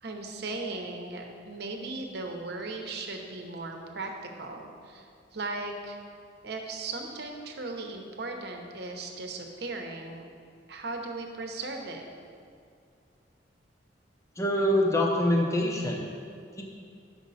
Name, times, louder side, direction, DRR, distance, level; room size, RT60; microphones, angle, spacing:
voice 1, 0.0-4.1 4.4-6.0 6.4-10.3 10.7-12.0, right 3 dB, 60° right, 3 dB, 0.9 m, -37 dB
voice 2, 14.4-16.1 16.5-16.6, left 1 dB, 15° left, 0 dB, 0.7 m, -25 dB
9.7 x 6.0 x 4.1 m, 2.3 s
head